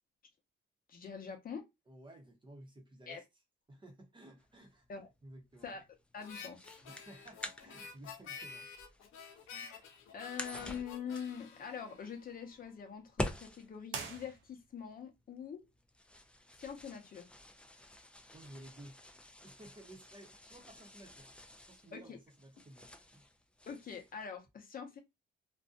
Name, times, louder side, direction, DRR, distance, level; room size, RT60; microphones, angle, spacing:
voice 1, 0.9-1.6 3.1-3.2 4.9-5.1 5.6-5.8 6.1-6.7 9.5-9.8 10.1-15.6 16.6-17.3 21.9-22.2 23.7-25.0, left 7 dB, 45° left, 0.7 m, -44 dB
voice 2, 1.9-3.2 3.7-4.9 5.2-5.7 6.8-8.7 9.3-9.5 18.3-19.0 19.4-21.3 21.7-23.2, right 1 dB, 25° right, 0.8 m, -55 dB
sound 1, 4.4-24.3, left 1 dB, 5° left, 0.3 m, -48 dB
Harmonica, 6.2-12.7, left 6 dB, 85° left, 0.6 m, -51 dB
sound 2, 13.9-14.9, right 5 dB, 70° right, 0.5 m, -44 dB
2.5 x 2.2 x 2.4 m
cardioid pair, 90°, 20 cm